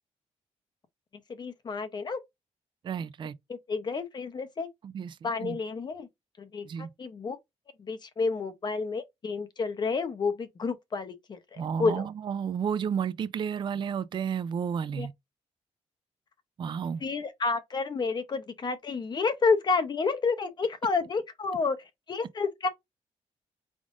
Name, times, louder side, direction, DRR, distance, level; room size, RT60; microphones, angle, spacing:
voice 1, 1.3-2.2 3.5-4.7 5.2-6.1 6.4-7.4 7.8-12.1 15.0-15.1 17.0-22.7, left 4 dB, 40° left, 0.7 m, -30 dB
voice 2, 2.8-3.3 4.8-5.6 6.6-6.9 11.6-15.1 16.6-17.0, right 7 dB, 45° right, 0.3 m, -32 dB
4.9 x 3.6 x 2.4 m
wide cardioid pair, 140°, 12 cm